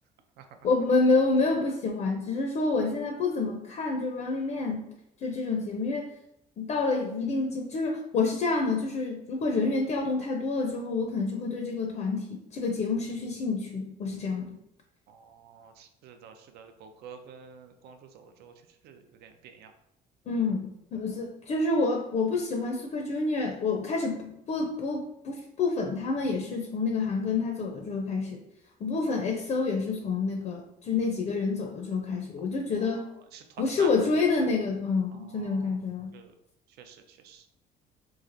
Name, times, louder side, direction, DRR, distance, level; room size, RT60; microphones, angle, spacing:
voice 1, 0.6-4.9 5.2-6.1 6.6-14.5 20.3-28.4 28.8-33.0 33.6-36.1, left 3 dB, 45° left, 2 dB, 0.4 m, -28 dB
voice 2, 15.1-18.5 18.8-19.7 32.8-33.9 35.1-35.7 36.1-36.3 36.7-37.7, right 6 dB, 70° right, 6 dB, 0.4 m, -49 dB
3.1 x 2.4 x 2.5 m, 0.81 s
cardioid pair, 110°, 17 cm